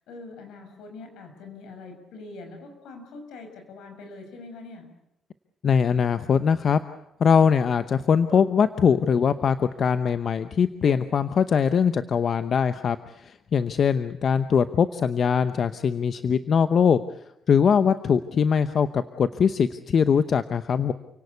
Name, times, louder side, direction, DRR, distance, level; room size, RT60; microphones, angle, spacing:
voice 1, 0.1-4.9, left 3 dB, 85° left, 6 dB, 6.3 m, -43 dB
voice 2, 5.6-6.8 7.2-17.0 17.5-20.9, left 7 dB, 55° left, 11 dB, 0.9 m, -22 dB
Laughter, 8.1-9.8 10.8-12.1, right 4 dB, 30° right, 2.4 m, -45 dB
29.0 x 17.5 x 8.4 m, 0.84 s
cardioid pair, 90°, 0 cm